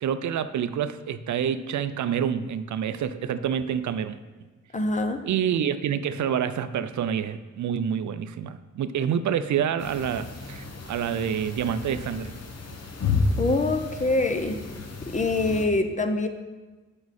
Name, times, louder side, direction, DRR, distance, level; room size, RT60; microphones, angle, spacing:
voice 1, 0.0-4.2 5.2-12.3, right 8 dB, 70° right, 12 dB, 0.5 m, -27 dB
voice 2, 4.7-5.2 13.4-14.6 15.1-16.3, left 2 dB, 25° left, 6 dB, 0.6 m, -24 dB
sound 1, 9.8-15.7, left 3 dB, 55° left, 1.0 m, -32 dB
9.4 x 5.4 x 4.2 m, 1.2 s
wide cardioid pair, 135°, 30 cm